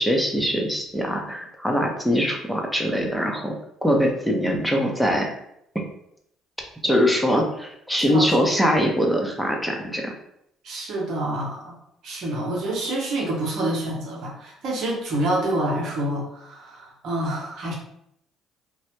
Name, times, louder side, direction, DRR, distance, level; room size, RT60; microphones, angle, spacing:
voice 1, 0.0-3.5 3.8-5.3 5.7-5.8 6.8-10.1, equal, ahead, 0 dB, 0.6 m, -22 dB
voice 2, 10.6-11.7 12.0-17.7, right 1 dB, 65° right, -2 dB, 0.8 m, -27 dB
2.1 x 2.0 x 3.0 m, 0.74 s
hypercardioid pair, 65°, 0 cm